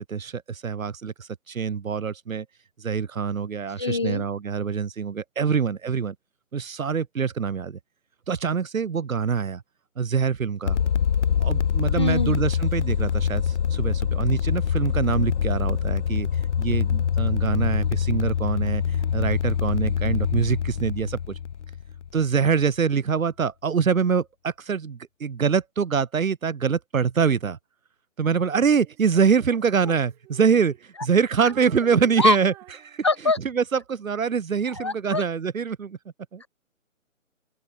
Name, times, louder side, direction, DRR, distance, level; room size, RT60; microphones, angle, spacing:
voice 1, 0.0-2.4 2.8-6.1 6.5-7.8 8.3-9.6 10.0-10.8 11.4-16.3 16.6-21.2 22.1-27.6 28.2-32.5 32.8-33.0 33.4-36.0 36.3-36.4, right 6 dB, 80° right, 1.4 m, -24 dB
voice 2, 3.8-4.3 11.9-12.4 29.9-30.0 32.2-32.4 33.0-33.4 34.7-35.2 36.4-36.5, left 3 dB, 20° left, 1.0 m, -24 dB
sound 1, 10.6-22.4, left 8 dB, 60° left, 0.5 m, -24 dB
Female singing, 28.8-31.1 31.4-33.4, right 16 dB, 5° right, 2.4 m, -48 dB
open air
hypercardioid pair, 175°, 40 cm